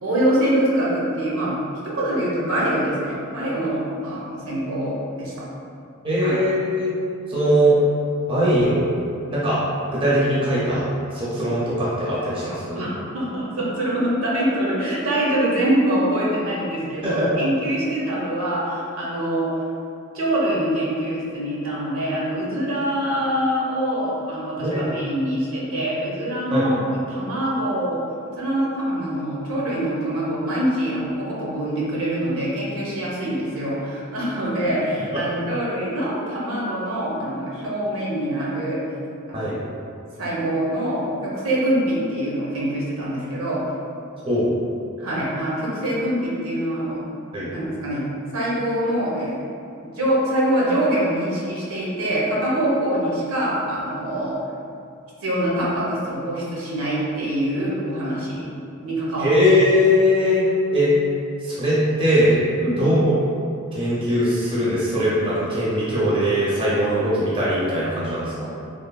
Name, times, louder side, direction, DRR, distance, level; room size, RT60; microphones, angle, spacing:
voice 1, 0.0-1.6 1.8-5.3 6.2-6.3 12.7-12.9 13.1-19.5 20.1-26.8 27.1-28.0 28.4-38.8 39.3-39.6 40.2-43.6 45.0-47.0 47.5-48.1 48.3-49.4 49.7-54.4 55.2-58.5 58.8-59.3 62.6-62.9, right 1 dB, 70° right, -6 dB, 0.6 m, -24 dB
voice 2, 6.0-6.9 7.3-7.8 8.3-8.9 9.3-9.6 9.9-10.9 11.1-12.9 17.0-17.7 24.6-24.8 26.5-26.7 35.4-35.5 39.3-39.6 44.3-44.5 47.3-47.5 59.2-60.5 60.7-60.9 61.4-62.4 62.8-63.1 63.7-68.5, equal, 25° right, -9 dB, 0.5 m, -20 dB
3.1 x 2.0 x 2.2 m, 2.5 s
head